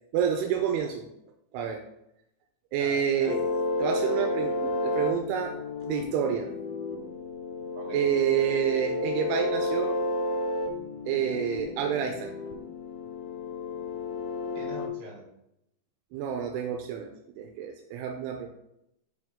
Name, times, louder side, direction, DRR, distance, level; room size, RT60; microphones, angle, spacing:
voice 1, 0.1-1.1 1.5-1.8 2.7-3.4 3.8-5.5 5.8-6.5 7.9-10.0 11.1-12.3 16.1-17.1 17.4-18.5, right 8 dB, 85° right, 3 dB, 2.7 m, -28 dB
voice 2, 2.8-3.6 7.7-8.1 14.5-15.2, right 2 dB, 55° right, -3 dB, 3.3 m, -44 dB
sound 1, 3.3-14.9, left 2 dB, 80° left, 2.2 m, -31 dB
6.3 x 5.7 x 3.5 m, 0.82 s
omnidirectional pair, 4.6 m